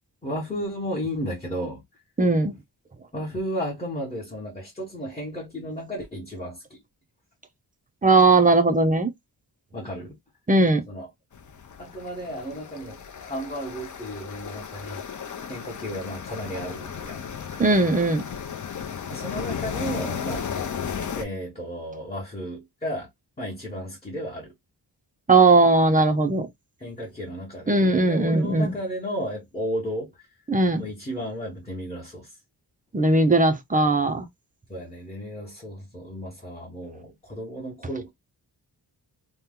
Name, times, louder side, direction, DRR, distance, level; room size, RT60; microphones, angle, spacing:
voice 1, 0.2-1.8 3.1-6.8 9.7-10.2 10.9-11.1 11.8-15.0 15.5-17.3 19.1-20.5 21.1-23.1 23.4-24.5 26.8-30.1 30.8-32.4 34.7-38.1, equal, 15° left, 1.0 m, -33 dB
voice 2, 2.2-2.5 8.0-9.1 10.5-10.8 17.6-18.2 25.3-26.5 27.7-28.7 30.5-30.8 32.9-34.2, right 3 dB, 20° right, 0.4 m, -19 dB
sound 1, 11.3-21.2, left 7 dB, 50° left, 0.6 m, -34 dB
2.8 x 2.1 x 3.5 m
wide cardioid pair, 175°, 41 cm